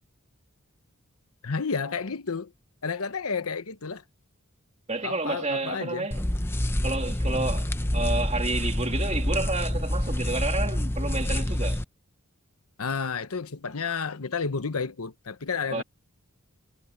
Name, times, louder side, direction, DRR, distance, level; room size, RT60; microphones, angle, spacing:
voice 1, 1.4-2.5 2.8-4.0 5.0-6.1 12.8-15.8, left 5 dB, 80° left, 1.0 m, -31 dB
voice 2, 4.9-6.2 6.8-11.8 15.7-15.8, right 2 dB, 30° right, 2.3 m, -30 dB
sound 1, 6.1-11.8, left 1 dB, 10° left, 0.7 m, -27 dB
head